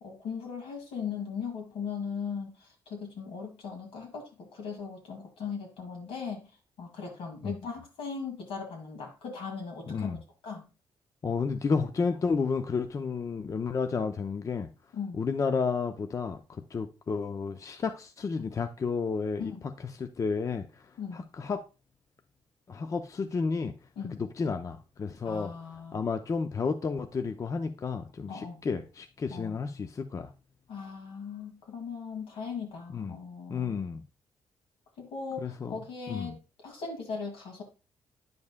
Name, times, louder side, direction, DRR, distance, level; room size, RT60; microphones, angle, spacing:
voice 1, 0.0-6.5 6.8-10.7 14.9-15.2 19.4-19.7 21.0-21.3 24.0-24.2 25.2-26.0 28.3-28.6 29.3-29.6 30.7-33.9 35.0-37.6, left 5 dB, 85° left, 2.1 m, -39 dB
voice 2, 9.9-10.2 11.2-14.7 15.1-19.5 20.0-20.6 21.1-21.6 22.7-23.7 24.2-25.5 25.9-30.3 32.9-33.2 33.5-34.0 35.4-35.7 36.1-36.3, left 5 dB, 35° left, 0.5 m, -31 dB
9.4 x 5.3 x 2.2 m
cardioid pair, 90°, 9 cm